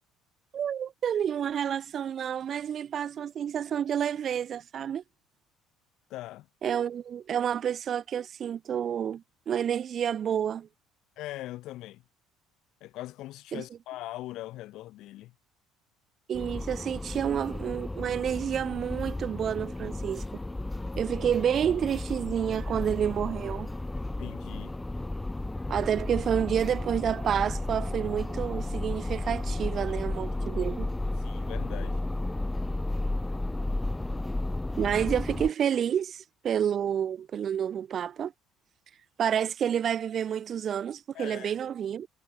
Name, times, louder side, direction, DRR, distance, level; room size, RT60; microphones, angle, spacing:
voice 1, 0.5-5.0 6.6-10.7 13.5-13.6 16.3-20.2 21.0-23.7 25.7-30.9 34.8-38.3 39.2-42.1, right 9 dB, 35° right, 3.4 m, -29 dB
voice 2, 6.1-6.5 11.2-12.0 12.8-15.3 24.2-24.8 30.2-30.3 30.6-30.7 31.2-32.0 41.1-41.6, left 16 dB, 60° left, 6.9 m, -41 dB
sound 1, 16.3-35.5, left 2 dB, 10° left, 0.6 m, -33 dB
cardioid pair, 150°, 0 cm